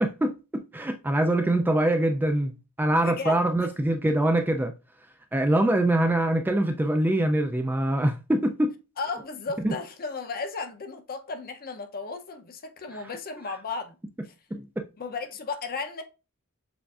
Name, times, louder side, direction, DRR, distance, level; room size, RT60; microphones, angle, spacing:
voice 1, 0.0-4.7 5.3-8.7 9.6-9.7 14.5-14.7, right 1 dB, 10° right, 0.3 m, -24 dB
voice 2, 2.9-3.7 9.0-14.0 14.2-14.3 15.0-16.0, left 4 dB, 45° left, 0.6 m, -35 dB
6.9 x 2.5 x 2.4 m
head